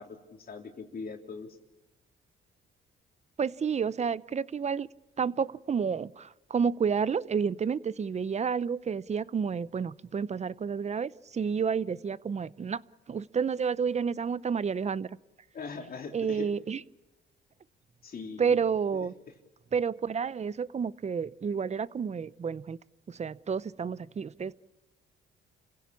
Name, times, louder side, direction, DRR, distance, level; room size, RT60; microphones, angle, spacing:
voice 1, 0.0-1.6 15.5-16.5 18.0-18.6, left 4 dB, 50° left, 3 dB, 3.4 m, -41 dB
voice 2, 3.4-4.9 5.2-12.8 13.1-15.1 16.1-16.8 18.4-19.1 19.7-22.8 23.1-24.5, right 6 dB, 35° right, 19 dB, 0.7 m, -30 dB
30.0 x 16.5 x 7.1 m, 1.1 s
cardioid pair, 90°, 20 cm